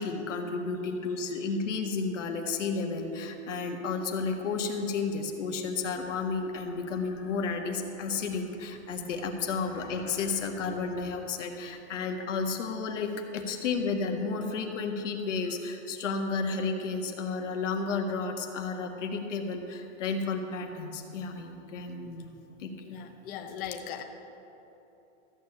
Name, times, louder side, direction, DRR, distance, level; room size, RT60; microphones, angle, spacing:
voice 1, 0.0-22.3 22.6-23.0, left 4 dB, 85° left, 4 dB, 1.6 m, -32 dB
voice 2, 22.9-24.0, left 9 dB, 25° left, 5 dB, 0.7 m, -38 dB
14.0 x 7.0 x 7.3 m, 3.0 s
supercardioid pair, 145°, 36 cm